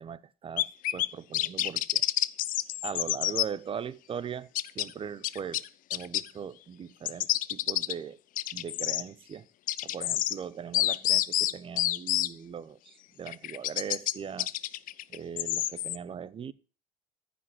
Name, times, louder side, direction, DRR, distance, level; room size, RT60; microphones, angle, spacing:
voice 1, 0.0-2.0 2.8-5.6 5.9-8.2 8.5-9.5 9.8-14.5 15.1-16.5, right 7 dB, 30° right, 0.8 m, -40 dB
sound 1, 0.6-1.1 1.3-3.4 4.5-4.9 5.2-6.3 7.0-7.9 8.4-9.0 9.7-10.3 10.7-12.3 13.3-14.1 14.4-16.0, left 14 dB, 45° left, 0.6 m, -28 dB
14.5 x 5.2 x 7.9 m
hypercardioid pair, 80°, 19 cm